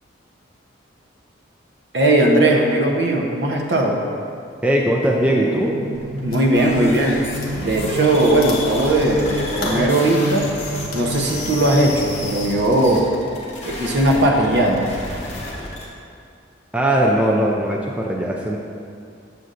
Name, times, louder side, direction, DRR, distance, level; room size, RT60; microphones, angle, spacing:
voice 1, 1.9-4.0 5.3-5.4 6.1-7.2 7.6-10.5 10.9-13.1 13.7-14.9, right 1 dB, 60° right, 0 dB, 0.8 m, -18 dB
sound 1, 4.5-4.6 5.1-5.7 6.0-6.7 7.4-12.2, left 1 dB, 50° left, 1.1 m, -34 dB
voice 2, 4.6-5.7 16.7-18.6, right 1 dB, 5° right, -2 dB, 0.4 m, -19 dB
sound 2, 5.5-13.4, right 1 dB, 90° right, 0.4 m, -32 dB
sound 3, 5.9-15.9, left 1 dB, 35° left, 1.1 m, -31 dB
7.7 x 6.8 x 2.5 m, 2.4 s
head